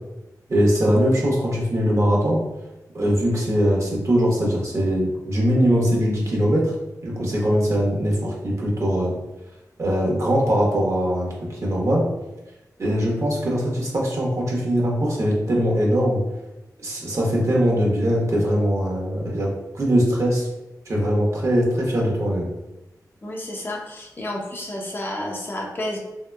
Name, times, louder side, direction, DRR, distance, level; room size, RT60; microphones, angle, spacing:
voice 1, 0.5-2.4 2.9-6.7 7.0-9.1 9.8-12.0 12.8-16.2 16.8-19.5 19.7-20.5 20.9-22.4, equal, 50° right, -4 dB, 1.0 m, -21 dB
voice 2, 23.2-26.0, left 1 dB, 35° left, -1 dB, 0.6 m, -30 dB
3.3 x 2.8 x 2.3 m, 0.99 s
wide cardioid pair, 75°, 7 cm